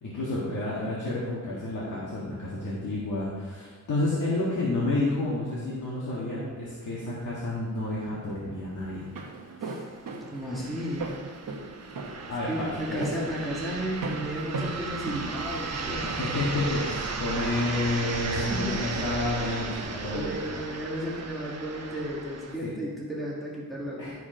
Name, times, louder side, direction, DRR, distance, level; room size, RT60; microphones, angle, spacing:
voice 1, 0.0-9.1 12.3-13.1 16.1-20.4 22.6-22.7 24.0-24.1, left 2 dB, 65° left, -7 dB, 1.9 m, -30 dB
sound 1, 8.5-8.6 8.9-9.0 9.7-22.6, right 4 dB, 50° right, 1.0 m, -36 dB
Walk footsteps, 8.9-16.1, right 3 dB, 75° right, 1.2 m, -37 dB
voice 2, 10.3-11.1 12.5-16.1 18.3-18.8 20.1-24.1, equal, ahead, -5 dB, 1.6 m, -33 dB
12.0 x 4.8 x 5.1 m, 1.5 s
wide cardioid pair, 165°, 33 cm